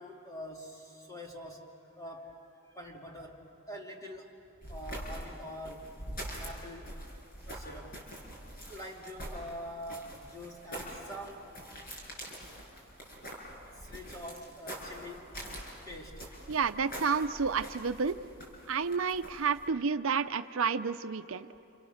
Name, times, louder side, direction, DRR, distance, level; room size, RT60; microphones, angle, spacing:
voice 1, 0.0-1.7 2.0-4.4 4.7-5.9 6.3-6.9 7.5-8.0 8.7-11.5 13.7-15.3 15.9-16.2, equal, 15° left, 0 dB, 2.5 m, -45 dB
sound 1, 4.6-19.7, equal, 45° left, 5.9 m, -45 dB
voice 2, 16.5-18.2 18.7-21.5, right 5 dB, 70° right, 10 dB, 0.6 m, -30 dB
29.5 x 29.5 x 6.5 m, 2.7 s
head